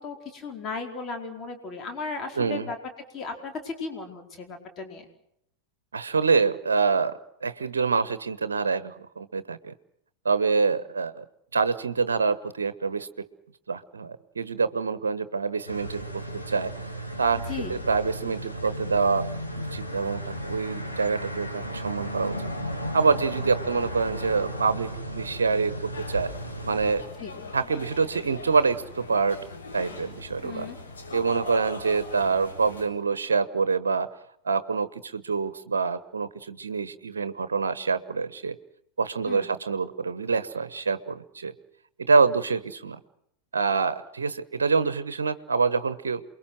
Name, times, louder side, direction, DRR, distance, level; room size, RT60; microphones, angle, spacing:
voice 1, 0.0-2.8 3.1-5.0 17.5-17.7 27.2-27.3 30.4-30.8 39.3-39.5, left 4 dB, 30° left, 3 dB, 4.8 m, -35 dB
voice 2, 2.3-2.7 5.9-7.1 7.4-9.7 10.2-11.2 11.5-13.3 13.7-16.9 17.2-17.4 17.7-19.3 19.6-22.5 22.9-26.3 26.7-27.0 27.5-29.4 29.7-30.7 31.1-34.1 34.4-38.6 39.0-41.5 42.0-43.0 43.5-46.2, right 4 dB, 70° right, 14 dB, 1.2 m, -26 dB
sound 1, 15.7-27.0, equal, 90° left, 3.6 m, -34 dB
sound 2, 25.9-32.9, left 3 dB, 70° left, 6.9 m, -41 dB
28.5 x 22.0 x 6.3 m, 0.72 s
figure-of-eight pair, 90°, 0 cm